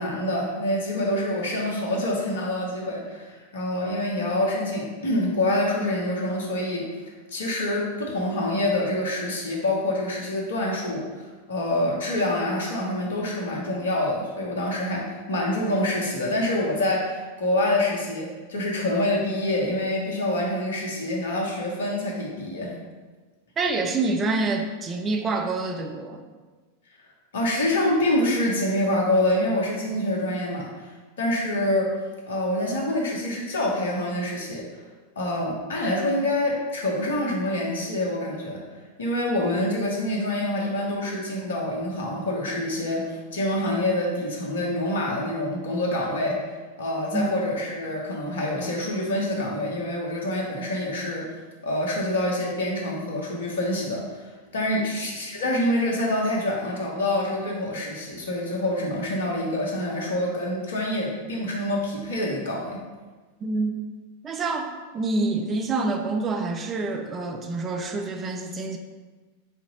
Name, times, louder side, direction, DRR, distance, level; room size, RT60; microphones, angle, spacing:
voice 1, 0.0-6.9 7.3-22.7 27.3-30.9 31.2-31.9 32.3-34.6 35.2-38.6 39.0-46.4 46.8-51.3 51.6-62.8, left 1 dB, 65° left, -1 dB, 1.0 m, -26 dB
voice 2, 23.6-26.2 47.1-47.3 54.7-54.9 63.4-63.7 64.2-68.8, right 3 dB, 25° right, 4 dB, 0.4 m, -27 dB
4.3 x 2.8 x 3.9 m, 1.3 s
figure-of-eight pair, 90°, 0 cm